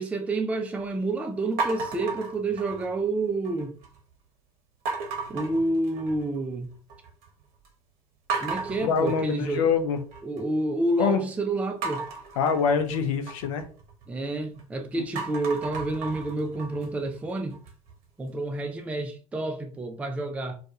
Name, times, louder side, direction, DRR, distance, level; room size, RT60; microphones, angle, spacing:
voice 1, 0.0-3.8 5.3-6.7 8.4-9.7 10.2-12.1 14.1-17.6 18.2-20.6, right 2 dB, 5° right, 0.4 m, -29 dB
sound 1, 1.6-3.1 3.4-4.0 4.9-6.4 6.7-7.3 7.6-7.7 8.3-10.4 11.8-14.6 15.0-17.9, right 4 dB, 50° right, 0.8 m, -35 dB
voice 2, 8.8-10.0 11.0-11.2 12.4-13.7 15.0-15.1, left 6 dB, 60° left, 0.5 m, -25 dB
2.3 x 2.2 x 2.7 m
figure-of-eight pair, 70°, 19 cm